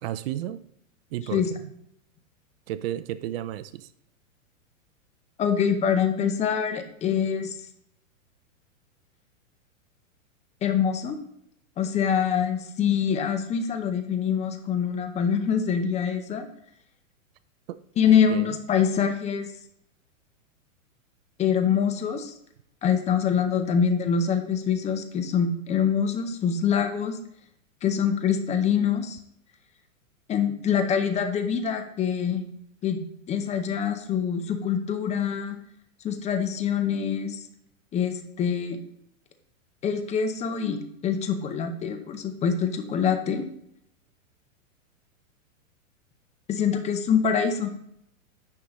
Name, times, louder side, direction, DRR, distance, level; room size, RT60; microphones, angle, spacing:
voice 1, 0.0-0.6 1.1-1.7 2.7-3.9 17.7-17.8 18.3-18.6, right 12 dB, 50° right, 14 dB, 0.5 m, -33 dB
voice 2, 5.4-7.6 10.6-11.2 11.8-16.5 18.0-19.5 21.4-22.3 22.8-27.2 27.8-29.2 30.3-32.4 32.8-33.0 33.3-35.6 36.0-37.4 37.9-38.8 39.8-43.5 46.5-47.7, left 7 dB, 15° left, 7 dB, 0.6 m, -25 dB
9.8 x 5.5 x 3.0 m, 0.72 s
hypercardioid pair, 130°, 40 cm